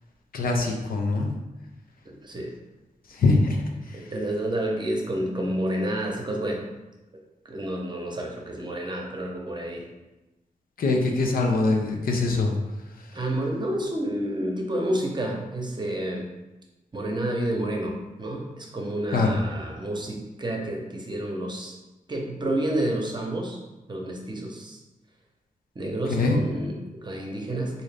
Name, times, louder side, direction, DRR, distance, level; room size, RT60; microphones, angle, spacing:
voice 1, 0.3-1.3 3.2-3.6 10.8-12.5 19.1-19.4 26.1-26.4, left 3 dB, 85° left, 1 dB, 0.6 m, -23 dB
voice 2, 2.1-2.5 3.9-6.6 7.5-9.9 13.1-16.3 16.9-21.8 22.1-23.6 23.9-24.8 25.8-27.8, right 1 dB, 30° right, 0 dB, 0.7 m, -29 dB
3.7 x 2.7 x 3.3 m, 1.0 s
wide cardioid pair, 90°, 15 cm